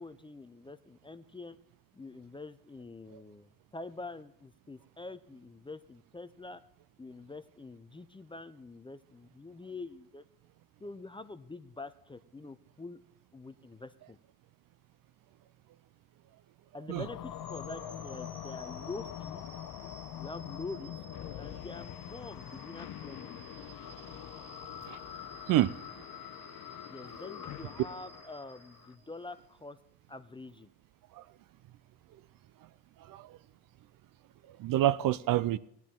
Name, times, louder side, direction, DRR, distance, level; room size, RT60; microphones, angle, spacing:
voice 1, 0.0-1.6 1.9-6.6 7.0-10.2 10.8-13.0 13.3-14.2 16.7-19.5 20.2-21.0 21.4-23.4 26.9-29.8 30.1-30.7, left 3 dB, 10° left, 0.5 m, -45 dB
sound 1, 17.0-28.9, left 12 dB, 55° left, 0.8 m, -44 dB
sound 2, 17.2-29.3, right 2 dB, 15° right, 1.4 m, -54 dB
voice 2, 33.0-33.4 34.5-35.6, right 13 dB, 55° right, 0.5 m, -28 dB
16.5 x 10.5 x 3.6 m
supercardioid pair, 75°, 42 cm